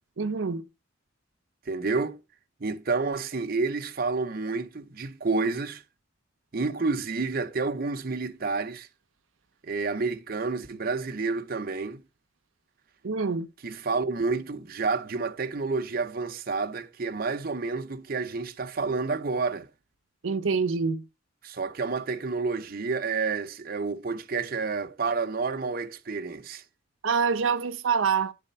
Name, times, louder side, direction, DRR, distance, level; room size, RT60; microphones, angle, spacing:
voice 1, 0.2-0.6 13.0-13.5 20.2-21.0 27.0-28.3, right 5 dB, 90° right, 0.6 m, -26 dB
voice 2, 1.7-2.2 2.6-5.8 6.5-8.9 9.6-12.0 13.6-19.7 21.4-26.6, right 4 dB, 50° right, 0.7 m, -29 dB
11.0 x 4.2 x 5.4 m
head